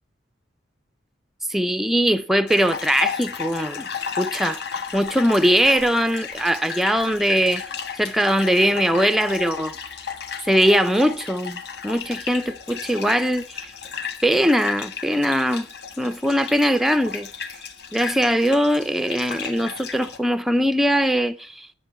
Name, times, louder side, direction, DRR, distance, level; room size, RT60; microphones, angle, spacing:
voice 1, 1.5-3.9 4.2-4.6 4.9-7.6 8.0-9.7 10.5-13.7 14.2-15.7 16.0-17.3 17.9-21.7, equal, ahead, 0.5 m, -21 dB
sound 1, 2.5-20.2, left 7 dB, 60° left, 1.3 m, -34 dB
11.5 x 7.3 x 8.4 m
head